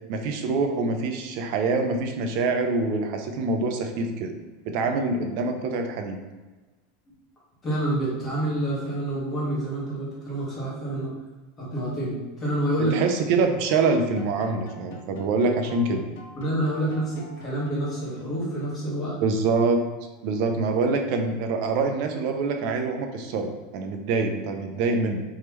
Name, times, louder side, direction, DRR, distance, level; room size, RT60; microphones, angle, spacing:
voice 1, 0.1-4.3 4.6-6.2 12.9-16.0 19.2-19.8 20.2-25.2, right 3 dB, 45° right, 4 dB, 0.5 m, -25 dB
voice 2, 7.6-11.1 11.6-12.9 16.3-19.2, right 1 dB, 20° left, -8 dB, 1.3 m, -28 dB
sound 1, 13.4-18.6, left 2 dB, 70° left, 0.6 m, -47 dB
3.5 x 3.2 x 3.0 m, 1.3 s
supercardioid pair, 170°, 0 cm